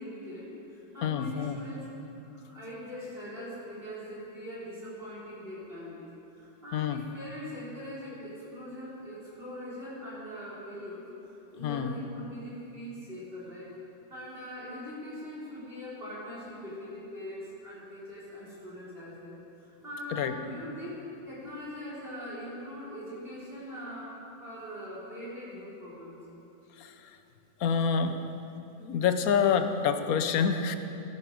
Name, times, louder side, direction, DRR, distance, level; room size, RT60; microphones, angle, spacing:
voice 1, 0.0-1.9 2.5-13.7 14.1-24.1 24.4-26.2, left 1 dB, 35° right, -8 dB, 3.9 m, -42 dB
voice 2, 1.0-1.6 6.7-7.0 11.6-11.9 20.1-20.3 26.8-26.9 27.6-28.2 28.8-30.8, left 7 dB, 65° left, 9 dB, 1.2 m, -27 dB
17.0 x 11.0 x 5.1 m, 2.9 s
omnidirectional pair, 1.8 m